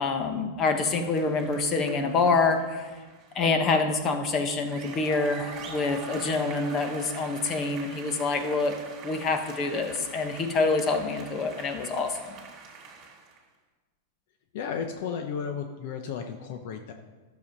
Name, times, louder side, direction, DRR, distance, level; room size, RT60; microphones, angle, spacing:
voice 1, 0.0-2.8 3.3-8.8 9.0-12.2, left 3 dB, 30° left, 7 dB, 1.2 m, -26 dB
sound 1, 1.0-3.5 4.5-13.4, right 5 dB, 30° right, 2.4 m, -44 dB
voice 2, 14.5-16.9, left 6 dB, 60° left, 5 dB, 0.8 m, -33 dB
11.5 x 7.1 x 5.4 m, 1.3 s
supercardioid pair, 140°, 0 cm